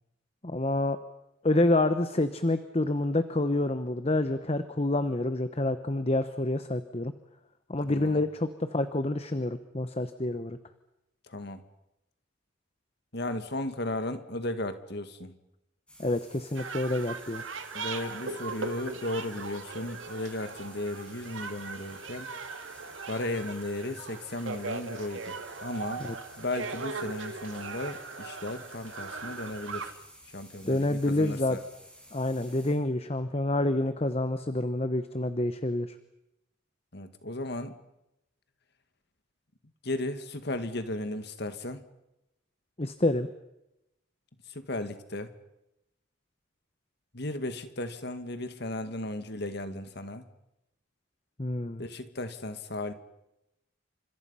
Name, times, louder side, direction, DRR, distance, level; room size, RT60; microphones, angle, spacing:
voice 1, 0.4-1.0 1.4-7.1 7.7-10.6 16.0-17.4 26.0-26.1 30.7-31.6 32.1-35.9 42.8-43.3 51.4-51.8, left 2 dB, 30° left, 10 dB, 1.0 m, -28 dB
voice 2, 7.9-8.2 11.3-11.6 13.1-15.4 17.7-22.3 23.1-25.4 25.6-26.1 26.4-29.9 30.3-31.6 36.9-37.8 39.8-41.8 44.5-45.3 47.1-50.3 51.8-52.9, left 1 dB, 55° left, 9 dB, 1.9 m, -35 dB
sound 1, 15.9-32.7, equal, 5° left, 6.5 m, -53 dB
sound 2, 16.5-29.9, right 4 dB, 70° right, 1.9 m, -39 dB
29.5 x 27.0 x 5.7 m, 0.89 s
head